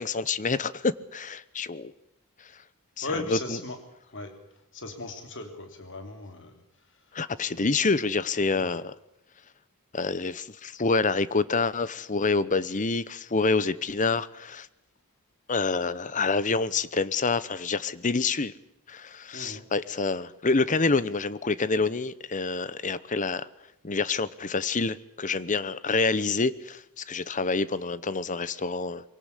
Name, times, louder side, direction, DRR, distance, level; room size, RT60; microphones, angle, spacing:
voice 1, 0.0-1.9 3.0-3.1 7.1-8.9 9.9-14.7 15.5-18.5 18.9-23.5 23.8-29.0, left 4 dB, 35° left, 17 dB, 0.9 m, -27 dB
voice 2, 3.0-3.8 4.1-4.3 4.7-6.6 7.4-7.8 8.6-8.7 19.3-19.6, left 2 dB, 55° left, 6 dB, 3.2 m, -37 dB
23.0 x 18.0 x 9.9 m, 0.83 s
head